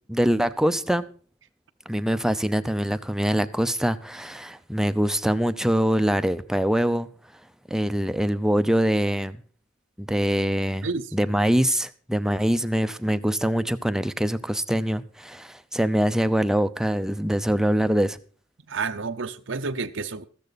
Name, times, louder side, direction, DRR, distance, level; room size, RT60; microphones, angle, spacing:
voice 1, 0.1-1.1 1.9-7.1 7.7-9.4 10.0-18.2, equal, 5° right, 0.6 m, -24 dB
voice 2, 18.7-20.2, right 4 dB, 75° right, 0.7 m, -30 dB
14.5 x 13.5 x 4.1 m
head